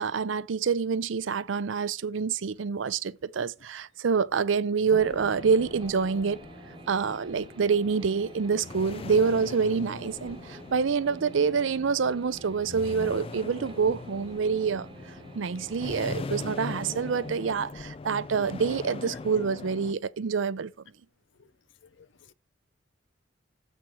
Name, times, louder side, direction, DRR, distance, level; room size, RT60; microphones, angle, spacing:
voice 1, 0.0-6.5 6.9-14.9 15.3-20.7, right 5 dB, 80° right, 0.5 m, -27 dB
sound 1, 4.9-19.9, left 3 dB, 30° left, 0.3 m, -41 dB
sound 2, 5.4-17.7, right 3 dB, 25° right, 0.6 m, -49 dB
voice 2, 22.0-22.3, left 5 dB, 70° left, 0.6 m, -55 dB
7.7 x 4.3 x 6.0 m
head